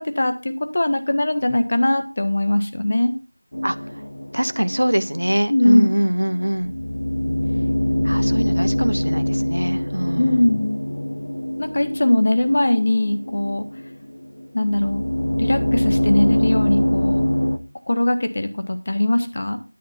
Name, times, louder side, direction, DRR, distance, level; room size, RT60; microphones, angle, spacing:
voice 1, 0.0-3.1 5.5-5.9 10.2-10.8 11.6-13.7 14.5-15.0 15.4-17.3 17.9-19.6, left 1 dB, 25° left, 9 dB, 0.7 m, -20 dB
sound 1, 3.5-5.4 5.9-6.0 6.3-14.1 14.4-17.6, left 1 dB, 55° left, 0.9 m, -23 dB
voice 2, 3.6-4.0 4.3-6.7 8.0-10.4, equal, 60° right, 12 dB, 0.7 m, -23 dB
13.0 x 9.5 x 2.6 m, 0.32 s
figure-of-eight pair, 175°, 0 cm